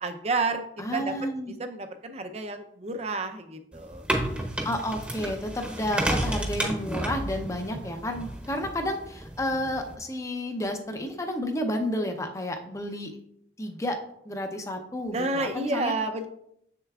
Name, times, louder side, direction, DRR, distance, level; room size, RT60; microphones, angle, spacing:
voice 1, 0.0-0.6 0.9-1.1 1.6-4.0 15.1-16.3, right 3 dB, 35° right, 7 dB, 0.6 m, -30 dB
voice 2, 0.8-1.5 4.4-13.1 13.6-14.0 14.2-15.9, left 1 dB, 15° left, 5 dB, 0.6 m, -31 dB
sound 1, 3.7-9.9, right 1 dB, 5° right, 0.9 m, -32 dB
7.4 x 6.6 x 2.4 m, 0.74 s
head